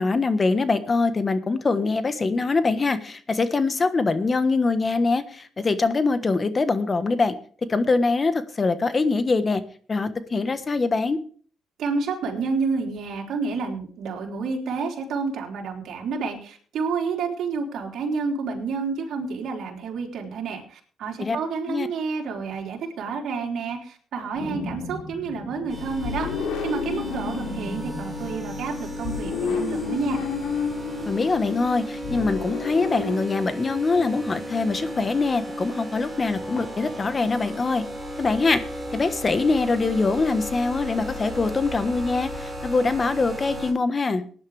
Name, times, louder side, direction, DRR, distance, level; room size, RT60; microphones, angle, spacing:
voice 1, 0.0-7.3 7.7-9.6 9.9-11.2 21.2-21.4 21.7-21.9 31.1-37.8 38.2-38.6 38.9-44.2, left 3 dB, 30° left, 11 dB, 1.3 m, -23 dB
voice 2, 11.8-30.2, right 4 dB, 70° right, 0 dB, 3.6 m, -29 dB
sound 1, 24.3-33.2, left 5 dB, 90° left, 3.2 m, -32 dB
sound 2, 25.7-43.7, equal, 10° right, 4.6 m, -34 dB
18.5 x 10.5 x 3.4 m, 0.43 s
cardioid pair, 90°, 0 cm